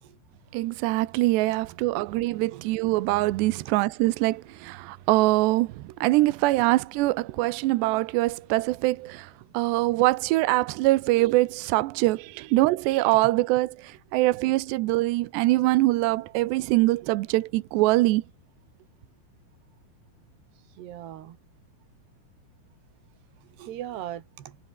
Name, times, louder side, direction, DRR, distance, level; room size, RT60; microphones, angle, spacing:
voice 1, 0.5-18.2, right 19 dB, 85° right, 2.5 m, -23 dB
voice 2, 20.8-21.4 23.4-24.6, right 12 dB, 60° right, 3.6 m, -39 dB
omnidirectional pair, 6.0 m